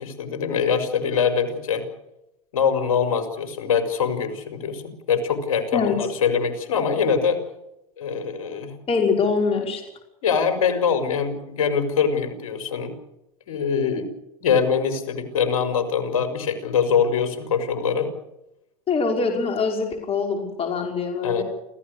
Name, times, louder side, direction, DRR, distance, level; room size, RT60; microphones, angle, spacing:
voice 1, 0.0-1.9 2.5-4.8 5.1-7.4 8.0-8.8 10.2-12.9 13.5-14.1 14.4-18.1 21.2-21.4, left 6 dB, 80° left, 8 dB, 5.3 m, -23 dB
voice 2, 8.9-9.8 18.9-21.4, left 4 dB, 30° left, 3 dB, 5.7 m, -23 dB
28.0 x 16.0 x 6.7 m, 0.87 s
hypercardioid pair, 105°, 18 cm